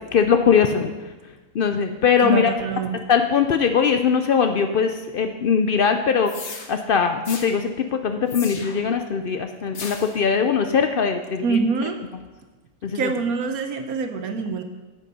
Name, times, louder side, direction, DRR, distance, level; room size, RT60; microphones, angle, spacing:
voice 1, 0.1-0.9 1.5-2.5 3.1-6.3 6.7-11.6 12.8-13.1, left 6 dB, 75° left, 7 dB, 0.5 m, -21 dB
voice 2, 2.2-3.0 11.4-12.0 12.9-14.6, right 4 dB, 70° right, 7 dB, 1.3 m, -25 dB
sound 1, 6.3-6.7 7.2-7.5 8.3-8.9 9.7-10.2, left 4 dB, 50° left, 1.3 m, -35 dB
8.7 x 8.4 x 5.4 m, 1.2 s
omnidirectional pair, 1.6 m